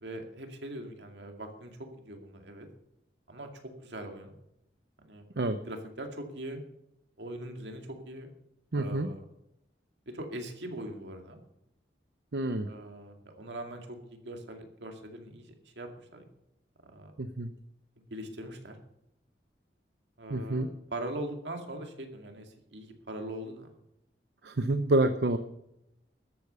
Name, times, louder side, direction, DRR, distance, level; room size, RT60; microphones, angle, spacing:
voice 1, 0.0-2.7 3.3-4.3 5.0-5.2 5.7-6.6 7.2-8.3 8.7-9.2 10.1-11.4 12.6-16.2 16.9-17.1 18.1-18.8 20.2-22.5 22.7-23.7, right 1 dB, 85° right, 4 dB, 2.3 m, -41 dB
voice 2, 8.7-9.1 12.3-12.7 17.2-17.5 20.3-20.7 24.4-25.4, right 2 dB, 70° right, 9 dB, 0.7 m, -28 dB
13.5 x 8.4 x 6.8 m, 0.84 s
head